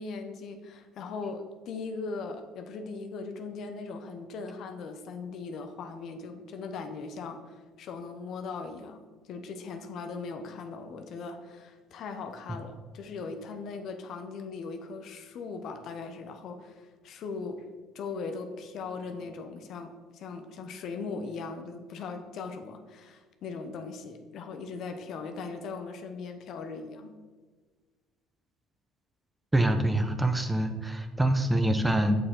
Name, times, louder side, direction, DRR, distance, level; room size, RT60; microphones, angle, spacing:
voice 1, 0.0-17.6 17.9-27.1, left 4 dB, 60° left, 6 dB, 0.8 m, -39 dB
voice 2, 29.5-32.2, right 1 dB, 10° right, 8 dB, 0.7 m, -25 dB
6.9 x 6.4 x 3.8 m, 1.4 s
hypercardioid pair, 70°, 0 cm